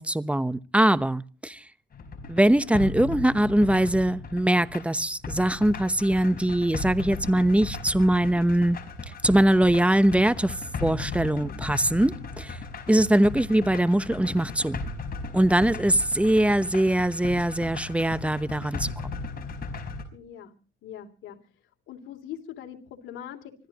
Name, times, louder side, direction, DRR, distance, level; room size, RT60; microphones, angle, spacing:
voice 1, 0.0-1.6 2.3-8.8 9.2-12.6 12.9-14.8 15.3-18.9, right 1 dB, 5° right, 0.9 m, -22 dB
Loop - Close Quarters, 1.9-20.0, left 3 dB, 50° left, 4.9 m, -36 dB
voice 2, 20.1-20.5 20.8-21.4 21.9-23.5, left 10 dB, 80° left, 3.2 m, -42 dB
25.0 x 15.5 x 3.0 m
cardioid pair, 90°, 20 cm